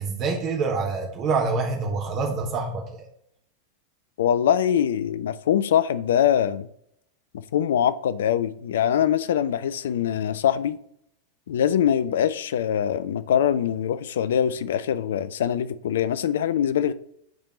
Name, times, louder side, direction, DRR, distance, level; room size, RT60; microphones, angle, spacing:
voice 1, 0.0-3.1, right 4 dB, 35° right, 1.0 m, -26 dB
voice 2, 4.2-6.7 7.5-10.8 11.5-16.9, left 9 dB, 60° left, 0.3 m, -23 dB
7.9 x 3.5 x 4.1 m
figure-of-eight pair, 90°, 0 cm